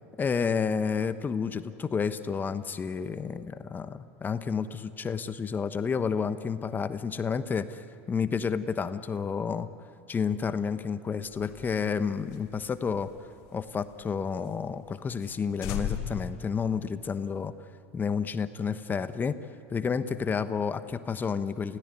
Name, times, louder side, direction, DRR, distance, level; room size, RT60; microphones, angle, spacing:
voice 1, 0.2-9.7 10.1-13.1 13.5-17.5 17.9-19.4 19.7-21.8, left 6 dB, 25° left, 12 dB, 1.2 m, -30 dB
sound 1, 11.3-14.1 14.4-14.5 14.9-15.0 15.2-15.4 15.6-17.3, left 9 dB, 55° left, 2.9 m, -38 dB
29.0 x 17.0 x 9.9 m, 2.6 s
hypercardioid pair, 80°, 8 cm